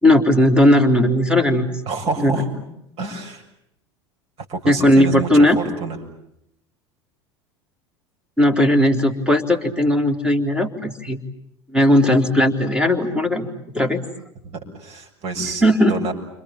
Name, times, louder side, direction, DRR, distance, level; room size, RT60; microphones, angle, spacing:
voice 1, 0.0-1.7 2.2-2.4 4.7-5.6 8.4-11.2 11.7-13.5 13.7-14.0 15.4-16.0, left 1 dB, 5° right, 8 dB, 3.5 m, -17 dB
voice 2, 1.9-2.5 3.0-3.4 4.5-6.0 14.4-15.6 15.9-16.1, right 4 dB, 45° right, 1 dB, 7.4 m, -28 dB
30.0 x 26.5 x 7.4 m, 0.77 s
figure-of-eight pair, 80°, 14 cm